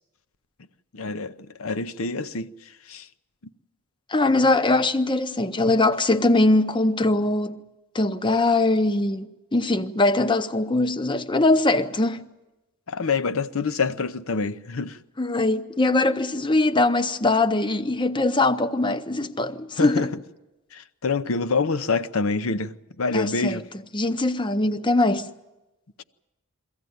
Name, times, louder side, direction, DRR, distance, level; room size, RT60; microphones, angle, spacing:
voice 1, 0.9-2.5 2.9-3.1 12.9-15.0 19.8-20.1 20.7-23.6, left 4 dB, 70° left, 0.7 m, -26 dB
voice 2, 4.1-7.6 7.9-12.2 15.2-20.1 23.1-23.6 23.9-25.3, left 2 dB, 20° left, 0.6 m, -22 dB
23.5 x 15.0 x 9.4 m
head